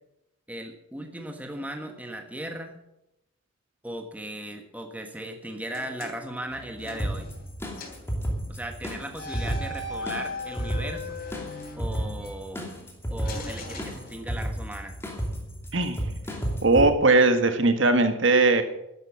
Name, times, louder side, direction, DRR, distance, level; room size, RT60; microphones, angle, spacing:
voice 1, 0.5-2.8 3.8-7.3 8.5-11.2 11.8-12.7 13.1-15.0, right 1 dB, 5° right, 4 dB, 1.4 m, -37 dB
sound 1, 5.7-7.5 7.8-8.1 9.1-12.3 13.2-14.6, left 3 dB, 45° left, 3.6 m, -39 dB
sound 2, 7.0-16.9, right 1 dB, 10° left, 2.7 m, -33 dB
voice 2, 16.6-18.6, right 3 dB, 60° right, 8 dB, 1.7 m, -19 dB
12.5 x 11.0 x 7.3 m, 0.85 s
head